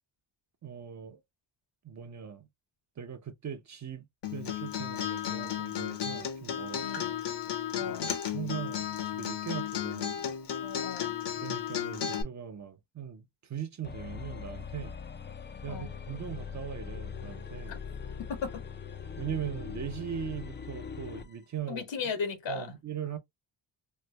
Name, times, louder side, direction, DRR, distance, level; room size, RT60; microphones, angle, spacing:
voice 1, 0.6-1.2 1.8-2.5 3.0-4.0 4.3-7.1 7.8-7.9 8.3-10.2 11.4-14.9 15.6-17.8 19.2-21.8 22.5-23.2, right 8 dB, 40° right, 0.6 m, -40 dB
Acoustic guitar, 4.2-12.2, left 9 dB, 65° left, 0.9 m, -34 dB
voice 2, 6.8-7.1 7.7-8.1 10.6-11.1 15.7-15.9 17.7-17.8 18.3-18.6 21.7-22.7, left 5 dB, 85° left, 1.3 m, -36 dB
sound 1, 13.8-21.3, left 6 dB, 25° left, 0.4 m, -41 dB
3.1 x 2.1 x 3.1 m
cardioid pair, 90°, 44 cm